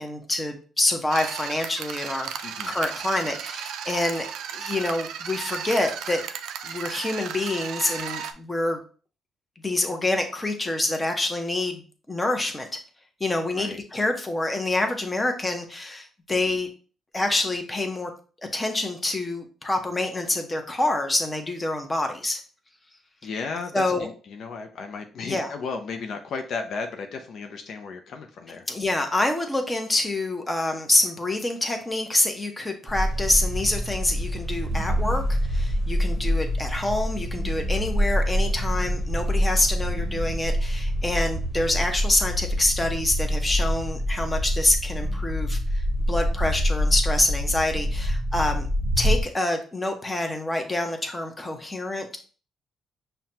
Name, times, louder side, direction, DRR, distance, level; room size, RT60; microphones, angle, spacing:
voice 1, 0.0-4.3 4.5-6.2 6.6-8.8 9.6-11.8 12.1-12.7 13.2-16.7 17.1-18.1 18.5-22.4 23.7-24.1 25.3-25.5 28.7-48.7 49.0-52.1, left 2 dB, 20° left, 4 dB, 0.8 m, -26 dB
sound 1, 1.1-8.3, right 8 dB, 85° right, 0.3 m, -34 dB
voice 2, 2.4-2.7 13.6-13.8 23.2-28.7, left 4 dB, 65° left, 5 dB, 0.4 m, -34 dB
sound 2, 32.9-49.2, equal, 25° right, 0.9 m, -26 dB
5.6 x 2.2 x 2.8 m, 0.38 s
cardioid pair, 90°, 0 cm